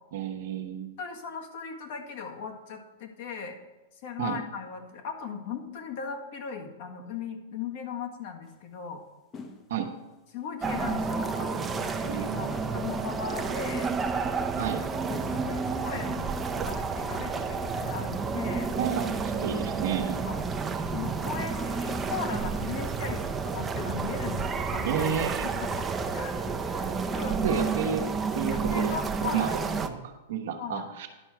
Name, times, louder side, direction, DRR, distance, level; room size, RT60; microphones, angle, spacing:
voice 1, 0.1-0.9 4.2-4.4 9.7-9.9 12.1-12.5 14.6-14.8 18.8-20.2 24.9-25.5 27.4-28.0 28.3-28.9 29.2-31.1, right 7 dB, 75° right, 2 dB, 1.0 m, -31 dB
voice 2, 1.0-3.6 4.0-9.0 10.3-13.9 15.1-18.7 20.2-20.4 20.9-27.6 28.5-29.6 30.6-30.9, left 6 dB, 55° left, 3 dB, 1.6 m, -38 dB
sound 1, 8.5-8.6 9.3-9.7 10.8-11.2 11.6-11.7 12.3-12.9 13.7-14.3 15.1-15.5 16.5-17.0 17.5-17.6 17.9-18.4, left 4 dB, 25° left, 0.9 m, -44 dB
sound 2, 10.6-29.9, right 5 dB, 15° right, 0.6 m, -30 dB
11.0 x 4.6 x 6.0 m, 1.1 s
hypercardioid pair, 135°, 0 cm